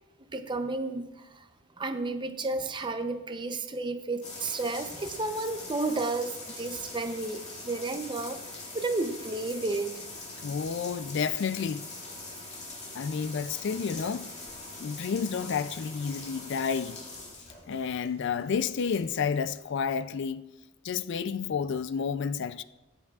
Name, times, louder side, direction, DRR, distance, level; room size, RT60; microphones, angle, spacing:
voice 1, 0.3-1.4 1.8-8.4 8.7-9.9, right 3 dB, 20° right, 0.6 m, -32 dB
sound 1, 4.2-20.0, left 2 dB, 30° left, 2.2 m, -43 dB
voice 2, 10.4-11.9 12.9-14.3 14.8-17.0 17.7-20.5 20.8-22.6, left 6 dB, 55° left, 0.4 m, -30 dB
23.0 x 8.0 x 2.4 m
head